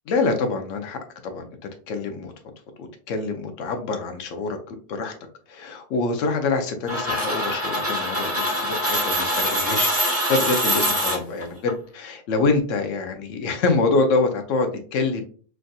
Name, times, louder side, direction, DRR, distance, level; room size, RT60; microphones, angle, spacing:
voice 1, 0.1-1.4 1.9-2.3 2.8-5.1 5.5-15.2, left 3 dB, 80° left, 5 dB, 1.0 m, -25 dB
sound 1, 6.9-11.7, equal, 15° right, 0.8 m, -24 dB
3.5 x 2.6 x 2.3 m, 0.42 s
omnidirectional pair, 1.3 m